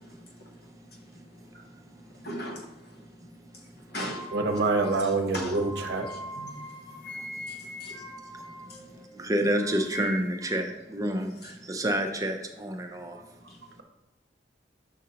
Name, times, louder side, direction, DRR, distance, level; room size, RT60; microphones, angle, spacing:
voice 1, 2.2-2.7 3.9-4.3 5.3-5.6 6.4-6.5 7.5-8.0, equal, 55° left, 0.9 m, -36 dB
sound 1, 4.0-9.2 9.6-10.6, left 1 dB, 80° left, 2.0 m, -42 dB
voice 2, 4.3-6.1 13.1-13.2, right 3 dB, 60° right, 0.7 m, -26 dB
voice 3, 9.2-11.3 11.7-13.2, right 1 dB, 20° right, 0.5 m, -28 dB
6.5 x 5.2 x 2.8 m
head